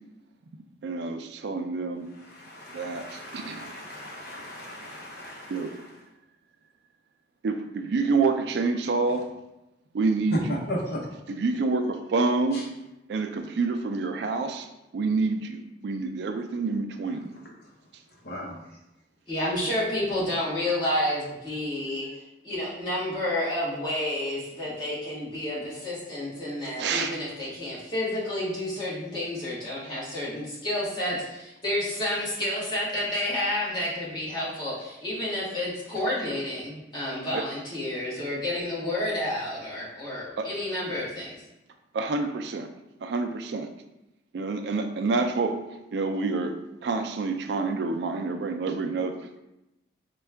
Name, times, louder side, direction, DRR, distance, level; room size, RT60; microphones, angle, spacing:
voice 1, 0.8-2.1 2.7-3.6 5.5-5.7 7.4-9.3 9.9-10.6 11.3-12.7 13.1-14.7 14.9-17.3 26.8-27.2 37.3-37.4 40.4-40.5 41.9-42.7 43.0-43.7 44.3-45.6 45.9-46.6 46.8-49.2, right 3 dB, 70° right, 6 dB, 0.3 m, -27 dB
voice 2, 2.3-5.8 10.3-11.0 12.5-12.6 18.2-18.6, equal, 60° left, -2 dB, 0.8 m, -35 dB
voice 3, 19.3-41.4, left 1 dB, 25° left, -9 dB, 1.4 m, -30 dB
4.4 x 2.3 x 3.3 m, 0.93 s
head